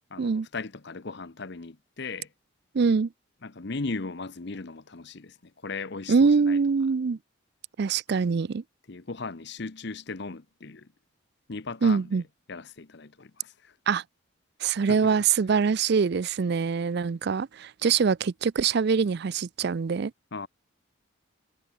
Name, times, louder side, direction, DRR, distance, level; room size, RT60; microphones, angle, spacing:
voice 1, 0.1-2.3 3.4-6.6 8.9-10.9 11.5-12.2 12.5-13.7 14.9-15.1 20.3-20.5, left 3 dB, 55° left, 0.9 m, -37 dB
voice 2, 2.7-3.1 6.1-7.2 7.8-8.6 11.8-12.2 13.9-14.0 14.6-20.1, right 5 dB, 50° right, 0.4 m, -24 dB
head